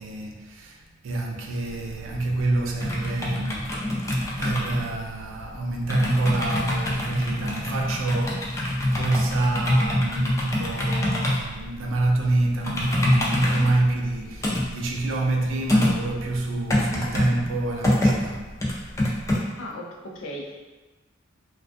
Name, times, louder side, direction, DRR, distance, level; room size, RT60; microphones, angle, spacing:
voice 1, 0.0-3.7 4.1-18.5, right 2 dB, 75° right, 1 dB, 0.4 m, -27 dB
sound 1, 1.6-19.4, left 1 dB, 15° left, 0.3 m, -26 dB
voice 2, 19.6-20.5, equal, 75° left, -1 dB, 0.4 m, -36 dB
2.3 x 2.2 x 2.5 m, 1.2 s
head